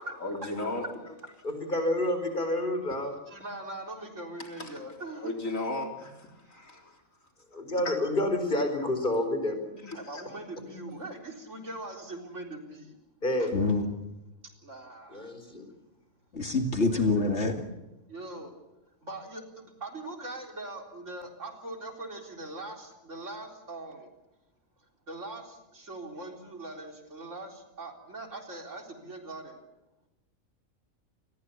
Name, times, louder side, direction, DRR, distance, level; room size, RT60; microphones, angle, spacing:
voice 1, 0.2-0.9 4.4-4.7 5.1-7.0 7.5-8.0 9.8-10.2, left 2 dB, 70° left, 3 dB, 4.2 m, -36 dB
voice 2, 1.4-3.2 7.5-9.6 13.2-13.5 15.1-15.7, left 1 dB, 35° left, 7 dB, 4.7 m, -29 dB
voice 3, 3.3-5.2 9.9-12.9 13.4-13.5 14.6-15.3 16.9-17.1 18.1-18.5 19.0-24.1 25.1-29.6, right 2 dB, 60° right, 3 dB, 4.3 m, -41 dB
voice 4, 13.5-13.9 16.3-17.7, left 3 dB, 55° left, 5 dB, 2.6 m, -26 dB
28.5 x 21.0 x 7.2 m, 0.99 s
omnidirectional pair, 1.4 m